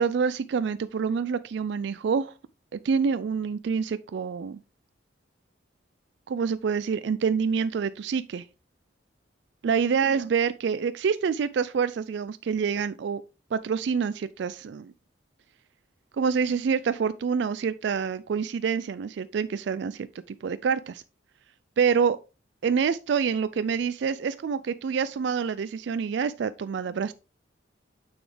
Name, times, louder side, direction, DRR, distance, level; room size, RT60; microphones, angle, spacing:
voice 1, 0.0-2.3 2.7-4.6 6.3-8.4 9.6-13.2 13.5-14.9 16.2-20.1 20.4-21.0 21.8-22.2 22.6-27.1, right 6 dB, 65° right, 0.3 m, -27 dB
6.9 x 6.1 x 3.3 m
head